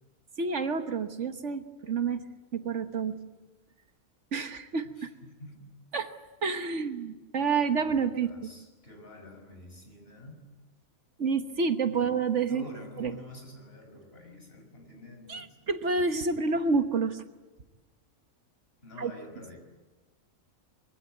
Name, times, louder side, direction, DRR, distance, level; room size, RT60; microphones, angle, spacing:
voice 1, 0.4-2.3 2.5-3.2 4.3-5.1 5.9-6.1 6.4-8.5 11.2-12.6 13.0-13.2 15.3-17.2 19.0-19.1, right 5 dB, 60° right, 8 dB, 1.5 m, -29 dB
voice 2, 5.0-5.7 8.2-10.5 11.9-12.1 12.5-15.4 18.8-19.6, left 1 dB, 45° left, 3 dB, 6.0 m, -48 dB
24.5 x 23.5 x 9.3 m, 1.2 s
omnidirectional pair, 1.4 m